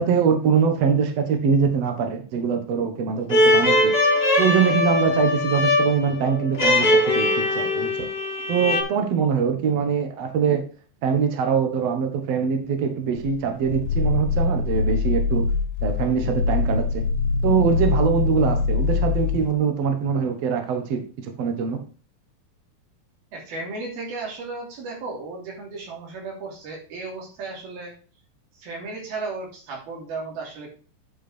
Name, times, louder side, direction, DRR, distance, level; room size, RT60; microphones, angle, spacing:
voice 1, 0.0-4.0 4.4-8.1 8.5-10.6 11.0-15.5 15.8-17.0 17.4-21.8, right 6 dB, 55° right, 5 dB, 2.0 m, -23 dB
sound 1, 3.3-8.8, left 1 dB, 20° left, 1.8 m, -21 dB
Growling, 13.2-19.5, left 4 dB, 80° left, 1.8 m, -23 dB
voice 2, 23.3-27.9 28.6-30.7, right 3 dB, 85° right, -1 dB, 5.0 m, -34 dB
9.6 x 5.7 x 4.4 m, 0.38 s
omnidirectional pair, 4.2 m